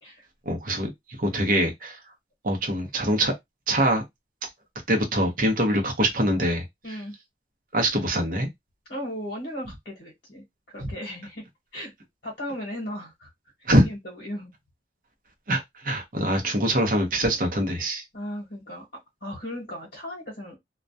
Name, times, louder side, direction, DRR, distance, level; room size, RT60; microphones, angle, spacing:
voice 1, 0.5-0.9 1.2-2.0 2.4-3.3 3.7-4.0 4.9-6.6 7.7-8.5 13.7-13.9 15.5-18.0, right 1 dB, 50° right, 0.7 m, -23 dB
voice 2, 6.8-7.1 8.9-11.4 11.7-11.9 12.2-13.3 13.8-14.5 18.1-18.9 19.2-20.6, equal, 60° left, 1.0 m, -36 dB
2.2 x 2.2 x 2.6 m
head